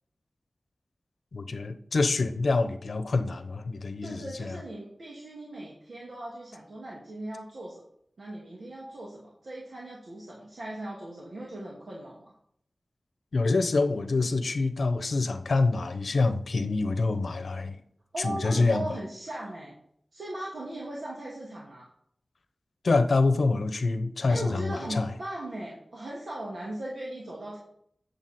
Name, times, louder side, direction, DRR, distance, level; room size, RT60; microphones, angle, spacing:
voice 1, 1.3-4.6 13.3-17.8 18.2-18.8 22.8-25.1, left 3 dB, 90° left, 9 dB, 0.8 m, -26 dB
voice 2, 4.0-7.8 8.2-12.2 18.1-19.7 20.1-21.9 24.3-27.6, right 1 dB, 80° right, -4 dB, 2.1 m, -38 dB
9.2 x 7.0 x 4.3 m, 0.69 s
wide cardioid pair, 80°, 0 cm